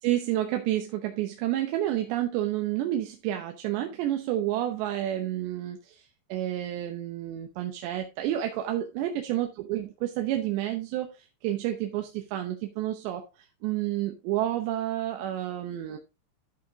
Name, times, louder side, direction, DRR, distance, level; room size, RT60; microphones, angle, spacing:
voice 1, 0.0-6.0 6.3-13.2 13.6-16.0, right 13 dB, 80° right, 3.1 m, -30 dB
13.0 x 5.0 x 3.5 m
omnidirectional pair, 5.1 m